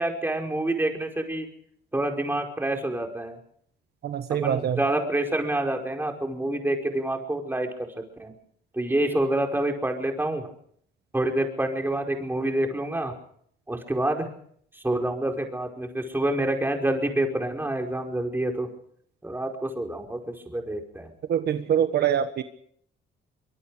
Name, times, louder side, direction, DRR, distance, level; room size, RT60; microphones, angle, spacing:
voice 1, 0.0-1.5 1.9-3.4 4.4-7.7 8.2-8.3 8.7-10.5 11.1-13.1 13.7-14.3 14.7-18.7 19.2-21.1, right 1 dB, 10° right, 3 dB, 5.0 m, -27 dB
voice 2, 4.0-4.8 21.3-22.4, right 9 dB, 60° right, 9 dB, 1.4 m, -24 dB
24.5 x 22.0 x 5.1 m, 0.64 s
cardioid pair, 105°, 19 cm